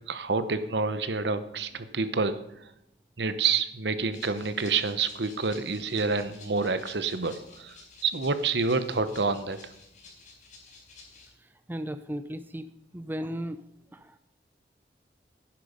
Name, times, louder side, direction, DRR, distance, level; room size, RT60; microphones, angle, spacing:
voice 1, 0.1-2.4 3.2-7.8 8.0-9.6, right 4 dB, 70° right, 12 dB, 1.0 m, -28 dB
Rattle (instrument), 4.1-11.3, left 4 dB, 45° left, 4.8 m, -51 dB
voice 2, 11.7-12.7 12.9-13.6 13.9-14.1, equal, 10° right, 11 dB, 0.5 m, -35 dB
10.5 x 10.5 x 5.2 m, 0.82 s
head